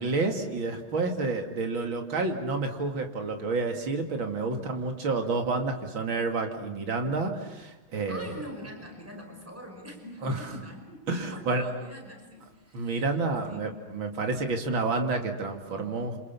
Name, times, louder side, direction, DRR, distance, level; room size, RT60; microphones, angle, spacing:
voice 1, 0.0-8.3 10.2-10.5 11.1-11.7 12.7-16.2, right 3 dB, 70° right, 4 dB, 3.1 m, -29 dB
voice 2, 8.1-13.2 13.4-13.7 15.6-16.0, equal, 5° right, 2 dB, 5.2 m, -44 dB
28.0 x 26.5 x 7.1 m, 1.1 s
omnidirectional pair, 2.3 m